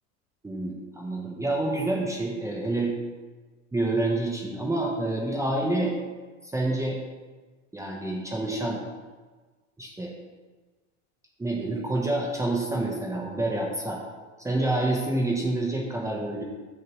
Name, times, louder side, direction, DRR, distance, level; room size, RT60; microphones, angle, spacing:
voice 1, 0.4-2.9 3.7-5.9 6.4-7.0 7.7-8.8 9.8-10.1 11.4-14.0 14.4-16.4, right 2 dB, 10° right, -2 dB, 0.9 m, -28 dB
6.7 x 6.4 x 3.0 m, 1.3 s
supercardioid pair, 120°, 38 cm